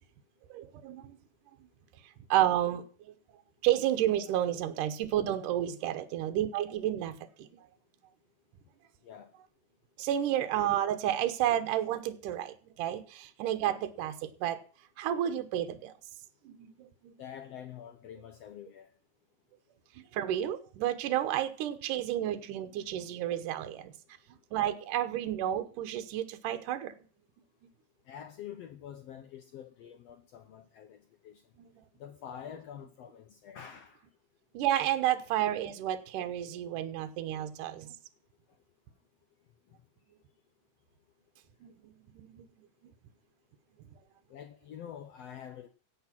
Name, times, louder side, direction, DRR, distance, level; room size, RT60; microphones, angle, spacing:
voice 1, 0.5-1.2 2.3-3.1 3.6-7.5 10.0-14.6 15.0-15.9 16.5-17.1 20.0-23.9 24.5-27.0 34.5-38.0 41.6-42.4, right 12 dB, 80° right, 2.5 m, -31 dB
voice 2, 17.2-18.9 28.1-31.0 31.2-31.4 32.0-34.0 44.3-45.7, left 9 dB, 75° left, 1.5 m, -46 dB
15.5 x 8.3 x 5.9 m
omnidirectional pair, 3.8 m